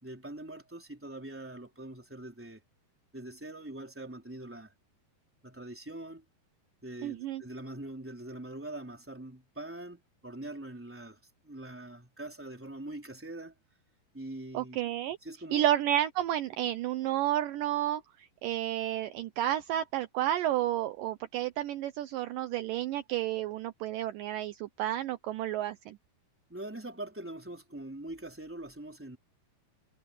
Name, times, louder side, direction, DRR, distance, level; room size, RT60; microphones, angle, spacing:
voice 1, 0.0-2.6 3.1-4.7 5.4-6.2 6.8-13.5 14.1-14.8 15.2-15.6 26.5-29.2, right 1 dB, 5° right, 3.4 m, -43 dB
voice 2, 7.0-7.4 14.5-15.2 15.5-26.0, right 12 dB, 80° right, 2.0 m, -31 dB
omnidirectional pair, 4.7 m